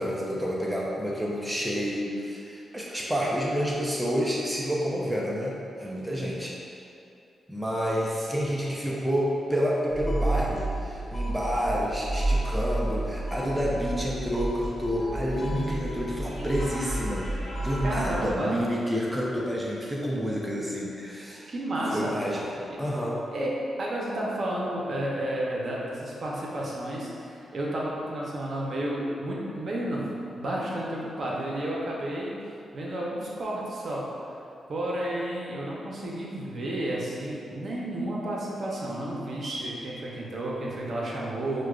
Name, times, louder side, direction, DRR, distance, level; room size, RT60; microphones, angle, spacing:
voice 1, 0.0-6.6 7.5-17.3 17.6-21.5 21.9-23.2, equal, 5° right, -4 dB, 0.5 m, -29 dB
sound 1, 9.9-18.3, right 1 dB, 45° left, 0.9 m, -31 dB
voice 2, 17.8-18.6 19.9-20.1 21.5-22.1 23.3-23.5 23.8-30.1 30.3-32.3 32.7-34.0 34.7-41.7, right 1 dB, 55° right, -4 dB, 0.7 m, -31 dB
6.0 x 2.2 x 2.3 m, 2.6 s
cardioid pair, 70°, 0 cm